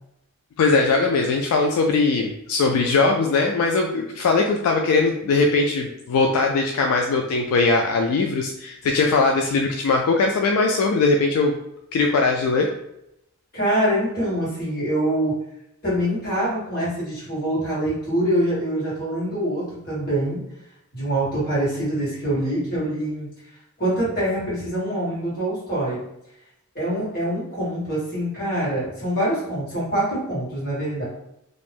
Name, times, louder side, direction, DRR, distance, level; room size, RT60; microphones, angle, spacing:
voice 1, 0.6-11.6 11.9-12.7, left 3 dB, 75° left, 2 dB, 0.3 m, -20 dB
voice 2, 13.5-15.4 15.8-20.4 20.9-23.3 23.8-26.0 26.7-31.0, right 1 dB, 45° left, -8 dB, 1.4 m, -24 dB
2.6 x 2.0 x 3.3 m, 0.81 s
head